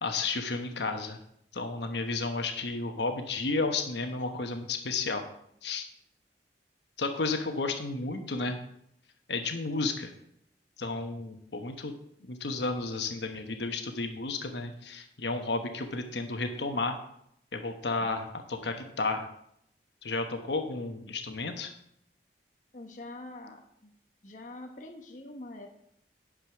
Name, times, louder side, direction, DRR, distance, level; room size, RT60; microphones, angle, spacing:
voice 1, 0.0-1.2 1.5-5.3 5.6-5.9 7.0-8.6 9.3-10.1 10.8-11.9 12.2-17.0 17.5-19.3 20.0-21.7, left 3 dB, 80° left, 5 dB, 1.1 m, -32 dB
voice 2, 22.7-23.9 24.2-25.7, left 2 dB, 45° left, 3 dB, 1.0 m, -45 dB
10.5 x 5.0 x 6.2 m, 0.74 s
head